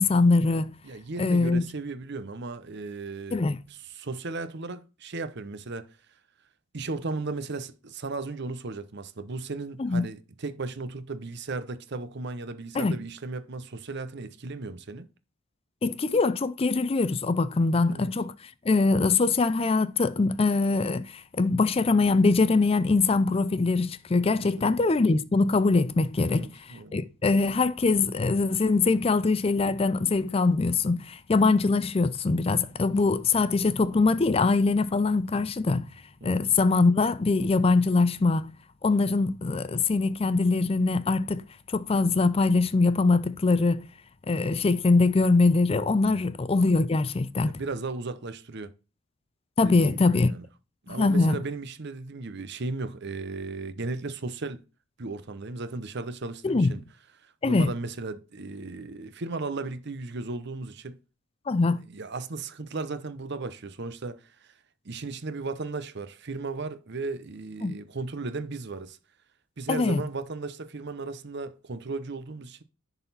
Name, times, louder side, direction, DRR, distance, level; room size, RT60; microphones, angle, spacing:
voice 1, 0.0-0.7 1.2-1.6 3.3-3.6 9.8-10.0 12.7-13.0 15.8-18.3 18.7-26.5 26.9-35.9 36.2-38.5 38.8-41.4 41.7-43.8 44.3-47.6 49.6-50.3 50.9-51.4 56.4-56.7 57.4-57.7 61.5-61.8 67.6-67.7 69.7-70.0, left 3 dB, 25° left, 0.4 m, -23 dB
voice 2, 0.8-5.9 6.7-15.1 17.9-18.1 24.4-24.7 26.2-27.0 36.2-36.5 46.0-46.3 47.4-48.7 49.6-50.4 50.8-54.6 55.0-56.8 57.2-61.0 61.9-64.6 64.8-69.0 69.6-72.6, right 3 dB, 50° right, 0.8 m, -36 dB
11.0 x 4.1 x 4.1 m
head